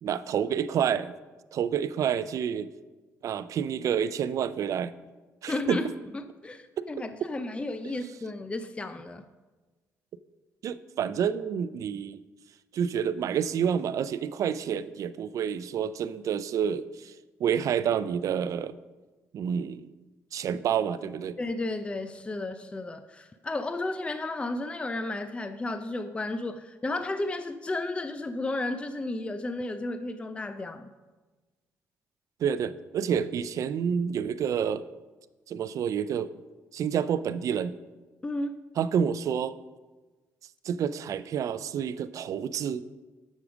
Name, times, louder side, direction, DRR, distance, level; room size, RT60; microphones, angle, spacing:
voice 1, 0.0-1.2 1.5-2.7 3.2-4.9 5.4-5.8 6.8-6.9 10.6-12.2 12.7-17.1 17.4-18.8 19.3-19.9 20.3-21.4 32.4-34.9 35.5-36.3 36.7-37.8 38.8-39.6 40.6-42.8, right 8 dB, 60° right, 16 dB, 0.4 m, -28 dB
voice 2, 5.5-5.9 6.1-9.3 21.4-30.9 38.2-38.6, left 2 dB, 20° left, 10 dB, 0.5 m, -33 dB
8.4 x 6.3 x 5.0 m, 1.2 s
cardioid pair, 90°, 6 cm